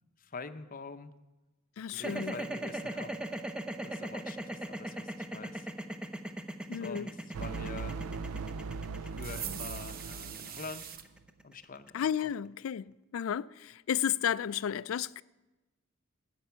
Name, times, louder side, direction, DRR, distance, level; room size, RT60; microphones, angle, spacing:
voice 1, 0.2-1.1 1.9-3.5 3.8-5.7 6.7-8.0 9.0-10.9 11.4-12.3, left 4 dB, 40° left, 0.7 m, -46 dB
voice 2, 1.8-2.3 6.7-7.1 11.9-15.2, left 9 dB, 65° left, 0.3 m, -33 dB
sound 1, 1.9-12.1, right 1 dB, 5° right, 0.7 m, -39 dB
sound 2, 7.3-10.9, right 4 dB, 90° right, 0.4 m, -39 dB
sound 3, 9.2-11.0, right 9 dB, 45° right, 0.8 m, -42 dB
13.5 x 9.4 x 6.9 m
head